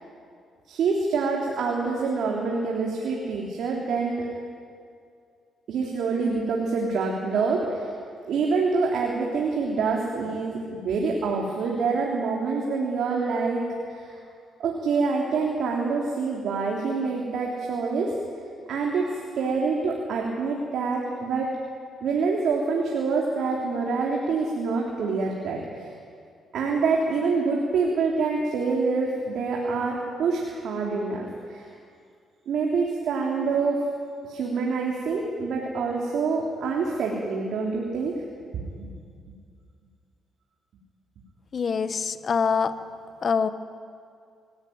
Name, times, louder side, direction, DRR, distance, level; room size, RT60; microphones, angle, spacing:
voice 1, 0.7-4.3 5.7-7.9 8.3-14.2 14.6-18.1 18.7-21.5 22.0-25.9 26.5-31.7 32.5-33.8 34.3-38.2 38.8-38.9, right 4 dB, 70° right, -1 dB, 3.7 m, -26 dB
voice 2, 41.5-42.7 43.2-43.5, left 6 dB, 45° left, 11 dB, 1.3 m, -24 dB
25.0 x 16.5 x 9.7 m, 2.3 s
cardioid pair, 90°, 0 cm